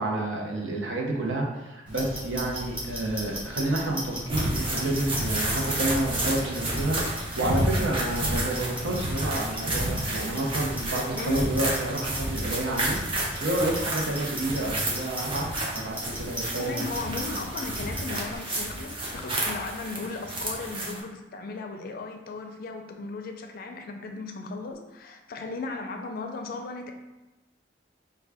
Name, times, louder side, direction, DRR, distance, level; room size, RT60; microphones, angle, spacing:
voice 1, 0.0-13.0 13.4-16.9, right 1 dB, 80° right, -1 dB, 0.7 m, -29 dB
Clock, 1.9-18.4, equal, 5° right, 1.0 m, -38 dB
sound 1, 4.3-21.0, right 1 dB, 30° right, 0.7 m, -31 dB
voice 2, 11.1-11.5 16.6-26.9, left 3 dB, 50° left, 4 dB, 0.4 m, -36 dB
3.5 x 2.3 x 3.4 m, 1.0 s
head